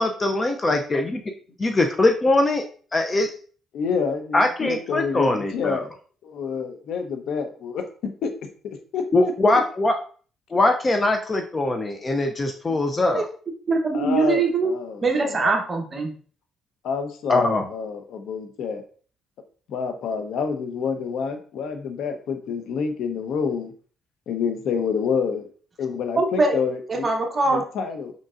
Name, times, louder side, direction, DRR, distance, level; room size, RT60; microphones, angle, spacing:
voice 1, 0.0-1.2 1.6-2.6 2.9-3.3 4.3-5.8 9.1-10.0 10.5-13.3 17.3-17.7, left 2 dB, 25° left, 5 dB, 0.5 m, -21 dB
voice 2, 3.7-5.9 6.2-7.9 8.2-8.3 8.6-9.6 13.9-15.5 16.8-18.8 19.7-23.7 24.3-25.4 25.8-27.1 27.5-28.1, left 6 dB, 75° left, 6 dB, 0.8 m, -28 dB
voice 3, 13.7-14.7 15.0-16.1 26.2-26.6 26.9-27.6, right 3 dB, 30° right, 2 dB, 0.9 m, -22 dB
5.2 x 3.8 x 2.5 m, 0.42 s
cardioid pair, 100°, 0 cm